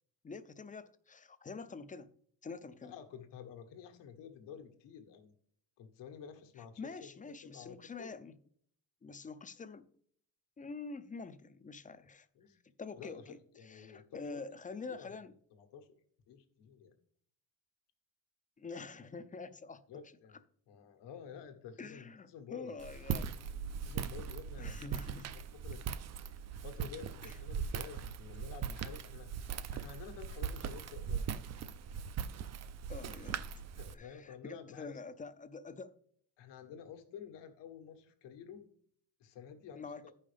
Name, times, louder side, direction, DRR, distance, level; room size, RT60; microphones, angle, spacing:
voice 1, 0.2-2.1 2.4-2.9 6.6-8.3 9.0-9.9 10.6-12.3 12.8-15.3 18.6-19.8 21.8-23.3 24.6-25.3 27.2-27.4 32.9-33.4 33.9-35.9 39.7-40.0, left 4 dB, 20° left, 0.5 m, -46 dB
voice 2, 2.8-5.3 5.8-7.1 7.4-8.1 12.3-12.6 12.9-14.4 15.0-15.1 15.6-15.9 16.3-16.9 19.9-20.4 20.7-22.7 23.8-24.9 25.5-25.8 26.5-31.3 33.8-35.0 36.4-38.6 39.2-40.1, left 7 dB, 70° left, 1.5 m, -51 dB
Walk footsteps, 22.8-33.9, right 7 dB, 40° right, 0.5 m, -40 dB
13.5 x 5.6 x 3.4 m
cardioid pair, 105°, 44 cm